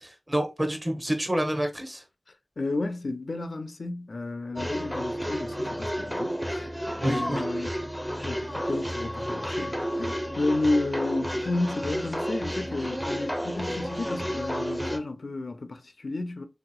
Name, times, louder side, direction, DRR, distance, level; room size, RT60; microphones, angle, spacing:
voice 1, 0.0-2.0 7.0-7.4, right 1 dB, 25° right, 0.8 m, -28 dB
voice 2, 2.6-6.7 7.0-7.7 8.2-16.5, left 2 dB, 70° left, 0.4 m, -32 dB
sound 1, 4.6-15.0, equal, ahead, 0.5 m, -31 dB
3.4 x 2.8 x 2.2 m
wide cardioid pair, 55°, 0 cm